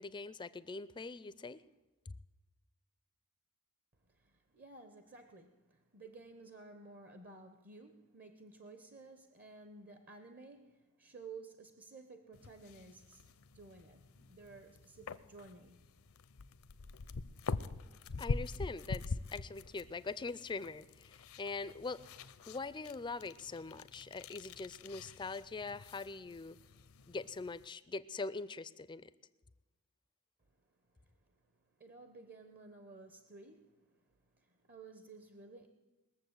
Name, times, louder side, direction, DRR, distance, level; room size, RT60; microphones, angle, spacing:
voice 1, 0.0-1.6 2.1-2.2 18.2-22.0 22.5-26.6 27.1-29.1, left 3 dB, 20° left, 16 dB, 0.4 m, -43 dB
voice 2, 4.1-13.3 13.5-15.8 30.9-31.4 31.8-34.0 34.4-35.7, right 3 dB, 45° right, 8 dB, 0.9 m, -54 dB
sound 1, 12.3-27.7, left 3 dB, 70° left, 0.6 m, -45 dB
20.5 x 7.2 x 8.0 m, 1.1 s
head